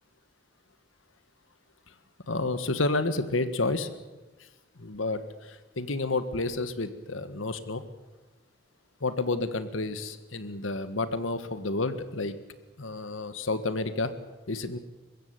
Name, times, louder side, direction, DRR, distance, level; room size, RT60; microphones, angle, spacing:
voice 1, 2.3-3.9 4.8-7.8 9.0-12.3 12.8-14.1 14.5-14.8, left 2 dB, 90° left, 12 dB, 1.6 m, -30 dB
22.0 x 15.5 x 9.7 m, 1.2 s
head